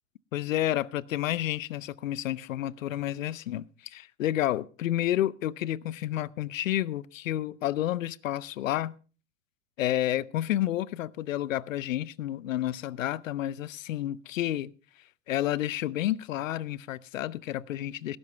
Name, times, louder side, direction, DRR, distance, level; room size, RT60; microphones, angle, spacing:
voice 1, 0.3-8.9 9.8-14.7 15.3-18.2, left 13 dB, 85° left, 0.7 m, -30 dB
18.0 x 11.0 x 3.2 m
hypercardioid pair, 95°, 39 cm